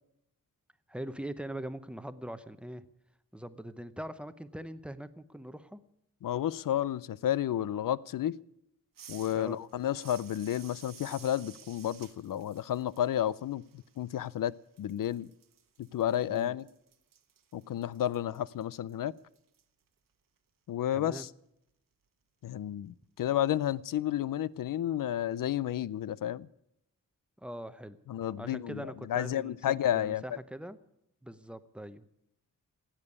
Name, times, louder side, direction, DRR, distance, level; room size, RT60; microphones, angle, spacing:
voice 1, 0.9-2.9 3.3-5.8 9.3-9.6 16.3-16.6 20.9-21.3 27.4-28.0 28.4-30.8 31.2-32.0, right 1 dB, 5° right, 12 dB, 0.7 m, -42 dB
voice 2, 6.2-8.4 9.1-14.5 14.8-15.3 15.8-16.7 17.5-19.1 20.7-21.3 22.4-26.5 28.1-30.4, left 11 dB, 75° left, 20 dB, 0.5 m, -31 dB
sound 1, 8.9-14.5 14.8-19.6, right 8 dB, 75° right, 1.2 m, -55 dB
16.0 x 8.9 x 9.7 m, 0.81 s
wide cardioid pair, 140°, 33 cm